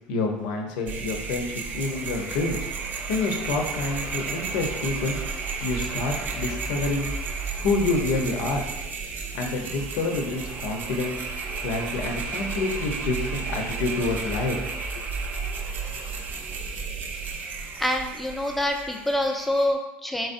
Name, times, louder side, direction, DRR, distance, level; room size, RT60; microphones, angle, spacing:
voice 1, 0.1-5.2 5.6-7.2 7.6-8.6 9.3-11.2 11.6-14.6 14.9-15.1, left 3 dB, 80° left, 2 dB, 0.9 m, -28 dB
sound 1, 0.9-19.7, right 4 dB, 45° right, 0.7 m, -33 dB
voice 2, 17.8-20.3, left 1 dB, ahead, 2 dB, 0.6 m, -26 dB
4.7 x 4.0 x 2.6 m, 0.97 s
supercardioid pair, 115°, 4 cm